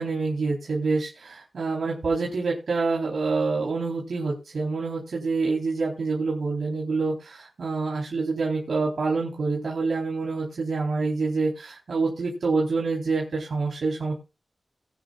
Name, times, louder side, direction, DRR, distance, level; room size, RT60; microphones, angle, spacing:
voice 1, 0.0-14.1, right 3 dB, 75° right, -3 dB, 4.1 m, -27 dB
21.0 x 10.5 x 2.5 m, 0.28 s
wide cardioid pair, 105°, 0 cm